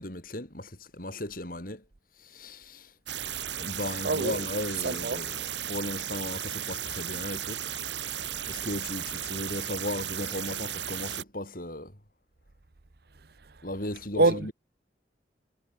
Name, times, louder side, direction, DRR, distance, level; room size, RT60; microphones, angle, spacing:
voice 1, 0.0-1.8 2.2-2.9 3.6-7.7 8.5-11.9 13.6-14.5, left 1 dB, 50° left, 6.3 m, -36 dB
sound 1, 3.1-11.2, right 10 dB, 90° right, 4.3 m, -35 dB
voice 2, 4.0-4.4 4.8-5.2 14.2-14.5, right 3 dB, 60° right, 0.9 m, -25 dB
head